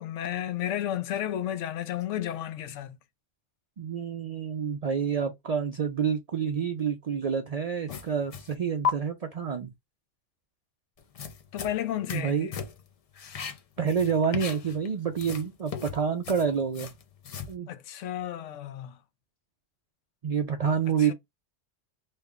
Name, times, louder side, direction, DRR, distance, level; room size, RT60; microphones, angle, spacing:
voice 1, 0.0-3.0 11.5-12.6 17.7-19.0 20.8-21.1, left 11 dB, 80° left, 0.9 m, -33 dB
voice 2, 3.8-9.7 12.1-12.5 13.8-16.9 17.5-17.7 20.2-21.1, right 7 dB, 55° right, 0.4 m, -28 dB
sound 1, 7.9-8.5 8.8-8.9 11.0-12.3 12.5-12.9 13.1-14.9 15.1-17.5, left 6 dB, 60° left, 0.3 m, -35 dB
3.2 x 2.1 x 3.5 m
omnidirectional pair, 1.2 m